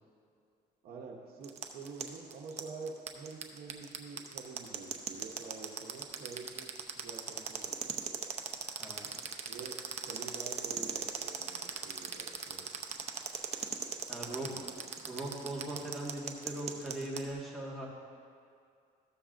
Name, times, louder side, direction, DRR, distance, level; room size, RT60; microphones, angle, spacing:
voice 1, 0.8-8.2 9.4-9.8 10.1-12.7 14.1-14.8, right 4 dB, 65° right, 0 dB, 1.0 m, -47 dB
sound 1, 1.4-17.2, right 7 dB, 40° right, 0.7 m, -38 dB
voice 2, 8.6-9.2 14.1-14.6 15.0-17.9, right 1 dB, ahead, -6 dB, 1.7 m, -40 dB
14.0 x 6.9 x 2.5 m, 2.4 s
cardioid pair, 110°, 17 cm